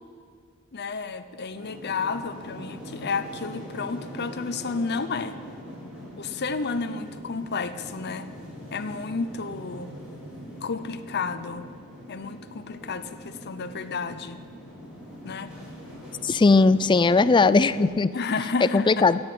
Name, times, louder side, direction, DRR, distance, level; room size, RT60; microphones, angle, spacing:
voice 1, 0.7-5.4 6.2-8.3 8.7-9.9 10.6-11.7 12.1-14.4 15.2-15.5 18.1-19.1, left 4 dB, 50° left, 10 dB, 0.7 m, -31 dB
sound 1, 1.5-17.9, equal, 5° right, 5.0 m, -42 dB
voice 2, 16.2-18.1 18.6-19.2, left 3 dB, 20° left, 15 dB, 0.4 m, -19 dB
16.5 x 8.0 x 9.0 m, 2.1 s
head